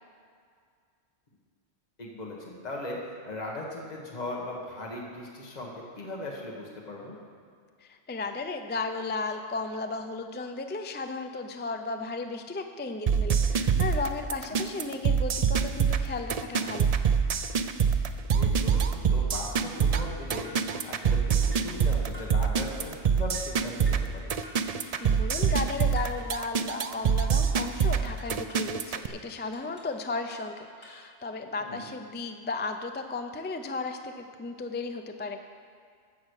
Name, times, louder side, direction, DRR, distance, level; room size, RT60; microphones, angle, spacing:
voice 1, 2.0-7.2 18.3-20.5 20.8-24.3 31.6-31.9, left 2 dB, 35° left, -2 dB, 1.7 m, -38 dB
voice 2, 7.8-16.9 25.0-35.4, left 3 dB, 15° left, 6 dB, 0.4 m, -35 dB
sound 1, 13.1-29.1, right 6 dB, 55° right, 0.4 m, -25 dB
sound 2, 19.9-20.2 20.4-20.7 21.0-21.2 21.5-21.8 22.1-22.4 22.7-22.9 23.3-23.6 23.9-24.1 24.4-24.7 24.9-25.2 25.5-25.7 26.0-26.2 26.9-27.7 28.0-28.7 29.3-30.0 30.3-31.1, equal, 70° left, 2.5 m, -49 dB
15.0 x 6.3 x 6.5 m, 2.2 s
omnidirectional pair, 1.2 m